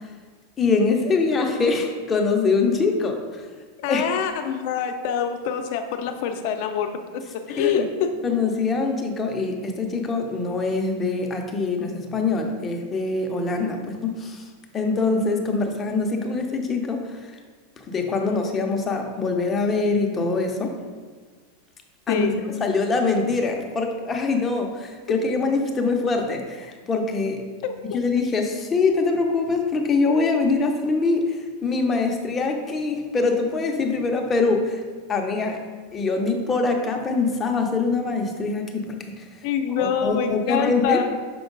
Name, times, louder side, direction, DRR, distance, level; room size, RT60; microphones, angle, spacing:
voice 1, 0.6-3.5 3.9-4.0 7.6-7.9 8.2-14.5 14.7-17.3 17.9-20.7 22.1-22.3 22.6-27.4 27.9-34.8 35.1-35.6 35.9-39.2 39.8-41.0, left 3 dB, 20° left, 2 dB, 0.7 m, -24 dB
voice 2, 3.8-8.1 22.1-22.4 27.6-28.0 39.4-41.1, left 7 dB, 55° left, 6 dB, 0.6 m, -25 dB
6.1 x 4.4 x 3.9 m, 1.5 s
supercardioid pair, 150°, 0 cm